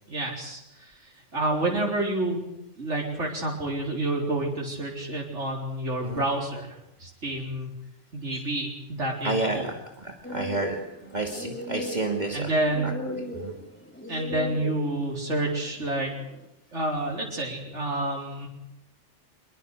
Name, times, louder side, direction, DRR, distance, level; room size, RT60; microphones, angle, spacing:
voice 1, 0.1-0.9 1.3-2.4 2.8-7.7 8.1-9.7 12.3-12.9 14.1-16.1 16.7-18.5, right 2 dB, 90° right, -1 dB, 4.5 m, -29 dB
voice 2, 9.2-9.7 10.0-10.8 11.1-12.5 12.8-13.6, right 2 dB, 40° right, 2 dB, 2.6 m, -30 dB
sound 1, 10.2-16.4, equal, 10° left, 4.2 m, -37 dB
25.5 x 23.5 x 6.6 m, 0.84 s
omnidirectional pair, 1.2 m